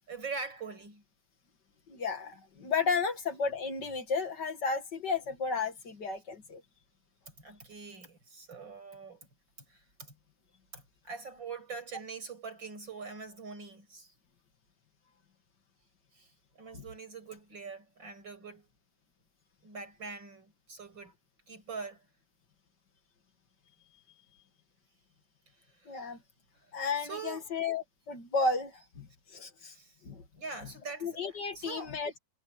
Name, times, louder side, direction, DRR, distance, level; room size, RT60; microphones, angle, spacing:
voice 1, 0.1-1.0 7.3-9.3 9.7-10.1 10.7-14.1 16.1-18.7 19.6-21.1 21.5-22.0 25.8-26.2 27.0-27.5 29.6-30.0 30.4-31.1 31.6-32.0, right 4 dB, 75° right, 7.6 m, -43 dB
voice 2, 1.9-6.6 16.7-16.8 25.9-26.2 26.7-29.7 30.0-30.2 31.0-32.1, left 4 dB, 65° left, 2.7 m, -33 dB
omnidirectional pair, 2.0 m